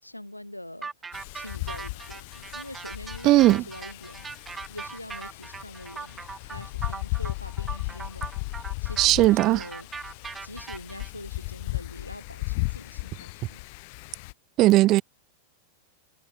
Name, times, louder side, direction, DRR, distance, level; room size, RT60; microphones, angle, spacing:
voice 1, 0.0-0.9 1.3-4.2 4.7-8.3 8.8-9.9 10.4-13.7, left 1 dB, 85° left, 5.5 m, -43 dB
sound 1, 0.8-11.1, right 5 dB, 15° right, 1.1 m, -40 dB
Wind, 1.1-14.3, left 28 dB, 45° left, 1.7 m, -36 dB
voice 2, 3.2-3.6 9.0-9.6 14.6-15.0, right 17 dB, 35° right, 0.3 m, -17 dB
figure-of-eight pair, 90°, 0 cm